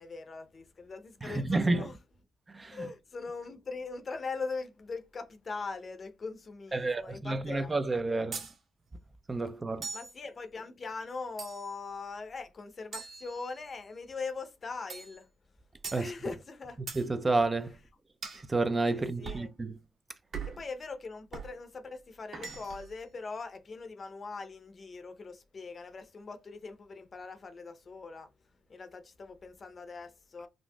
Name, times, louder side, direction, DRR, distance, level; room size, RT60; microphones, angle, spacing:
voice 1, 0.0-2.0 2.7-7.7 8.0-8.3 9.9-15.3 15.9-16.8 18.9-19.5 20.4-28.3 28.7-30.5, left 4 dB, 40° left, 0.6 m, -41 dB
voice 2, 1.2-1.9 2.5-2.9 6.7-8.4 9.3-9.9 15.9-16.1 16.9-17.7 18.5-19.7, right 3 dB, 25° right, 0.3 m, -30 dB
sound 1, 8.3-8.6 9.8-10.2 11.4-11.8 12.9-13.8 14.9-15.2 15.8-16.1 16.9-17.1 18.2-18.5 19.2-19.5 20.3-20.7 21.3-21.5 22.3-22.9, right 5 dB, 55° right, 1.2 m, -41 dB
3.7 x 2.4 x 2.2 m
cardioid pair, 90°, 0 cm